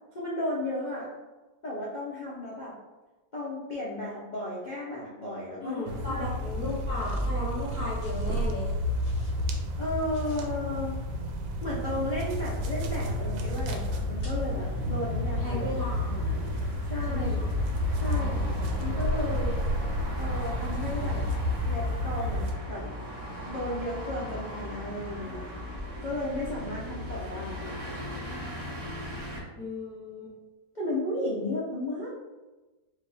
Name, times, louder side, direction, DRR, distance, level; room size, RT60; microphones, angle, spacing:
voice 1, 0.1-1.1 1.6-2.7 3.3-5.8 6.1-6.7 9.8-11.0 11.6-15.7 16.9-17.4 17.9-19.6 20.2-21.2 21.6-22.8 23.5-25.5 26.0-27.7 30.7-32.2, left 1 dB, 75° left, -7 dB, 0.4 m, -34 dB
voice 2, 5.6-8.7 15.4-16.4 17.1-17.5 18.0-19.1 29.6-30.3, left 1 dB, 10° right, -9 dB, 0.8 m, -36 dB
sound 1, 5.9-22.5, left 1 dB, 80° right, 1.3 m, -30 dB
sound 2, 6.9-7.4 8.0-8.4 9.0-9.4 10.1-10.5 12.6-12.8 14.2-14.4, equal, 55° left, 2.2 m, -55 dB
sound 3, 12.2-29.4, equal, 60° right, 0.3 m, -40 dB
4.6 x 2.5 x 3.4 m, 1.2 s
omnidirectional pair, 2.1 m